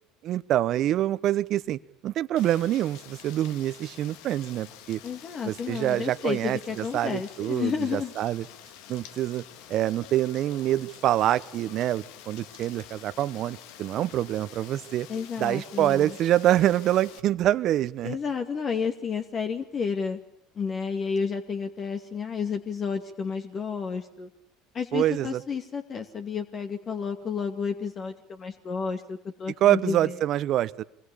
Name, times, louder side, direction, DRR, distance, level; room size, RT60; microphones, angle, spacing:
voice 1, 0.2-5.0 5.4-8.4 8.9-9.4 9.7-15.1 15.4-18.2 24.9-25.4 29.6-30.8, right 13 dB, 55° right, 17 dB, 1.1 m, -26 dB
Rain, 2.4-17.2, left 10 dB, 70° left, 1.8 m, -48 dB
voice 2, 5.0-8.1 15.1-16.2 18.0-20.2 20.6-24.3 24.7-30.2, left 6 dB, 40° left, 6 dB, 2.3 m, -31 dB
26.5 x 22.5 x 8.7 m, 0.74 s
hypercardioid pair, 75°, 0 cm